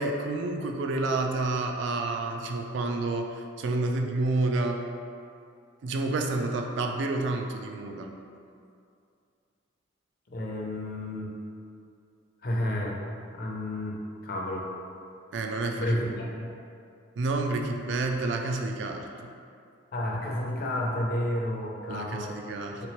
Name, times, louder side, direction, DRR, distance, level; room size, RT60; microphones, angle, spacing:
voice 1, 0.0-3.3 3.6-4.8 5.8-8.1 15.3-16.1 17.2-19.3 21.9-22.8, right 2 dB, 65° right, 3 dB, 0.3 m, -29 dB
voice 2, 10.3-11.3 12.4-13.0 13.3-14.0 14.2-14.6 15.8-16.5 19.9-22.4 22.8-22.9, left 1 dB, 50° left, -2 dB, 0.5 m, -31 dB
3.1 x 2.9 x 3.0 m, 2.4 s
head